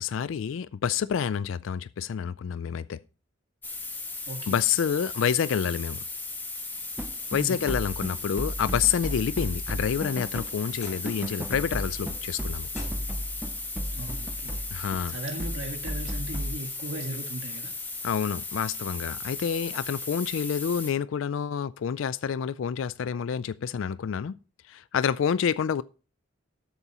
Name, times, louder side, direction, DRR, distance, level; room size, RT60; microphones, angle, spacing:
voice 1, 0.0-3.0 4.5-6.0 7.3-12.7 14.7-15.1 18.0-24.4 24.7-25.8, left 7 dB, 70° left, 0.4 m, -28 dB
sound 1, 3.6-20.9, left 3 dB, 10° left, 1.6 m, -36 dB
voice 2, 4.3-4.7 7.3-7.7 13.9-14.6 15.1-17.7, right 1 dB, 80° right, 1.6 m, -37 dB
sound 2, 7.0-16.6, equal, 10° right, 0.4 m, -35 dB
sound 3, 10.7-11.2 11.6-12.0 12.7-13.4 14.5-14.6 15.3-15.4 17.0-17.1, left 2 dB, 35° left, 4.7 m, -48 dB
12.5 x 8.0 x 2.9 m
head